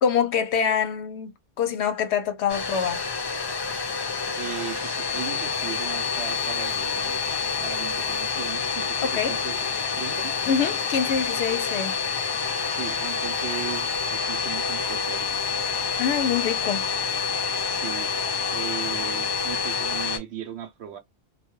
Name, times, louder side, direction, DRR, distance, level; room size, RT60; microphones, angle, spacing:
voice 1, 0.0-3.1 9.0-9.4 10.4-11.9 16.0-16.9, left 7 dB, 70° left, 0.8 m, -25 dB
Domestic sounds home sounds, 2.5-20.2, left 5 dB, 45° left, 0.3 m, -28 dB
voice 2, 4.3-7.3 7.6-9.6 10.0-10.3 12.7-15.3 17.7-18.1 18.5-21.0, right 10 dB, 70° right, 0.8 m, -37 dB
2.3 x 2.2 x 2.9 m
omnidirectional pair, 1.3 m